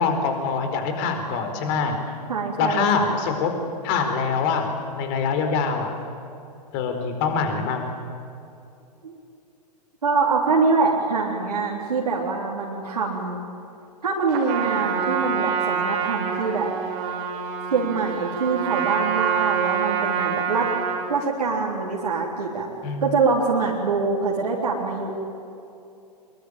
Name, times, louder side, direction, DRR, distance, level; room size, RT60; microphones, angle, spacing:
voice 1, 0.0-1.9 2.6-3.6 3.8-5.9 6.7-7.9 22.8-23.0, left 5 dB, 40° left, 6 dB, 4.5 m, -24 dB
voice 2, 2.3-3.2 9.0-9.2 10.0-13.4 14.0-16.7 17.7-20.7 21.1-22.7 23.0-25.1, right 4 dB, 70° right, -3 dB, 3.8 m, -24 dB
Trumpet, 14.3-21.1, right 7 dB, 40° right, 3.8 m, -26 dB
24.5 x 22.0 x 9.0 m, 2.7 s
figure-of-eight pair, 105°, 21 cm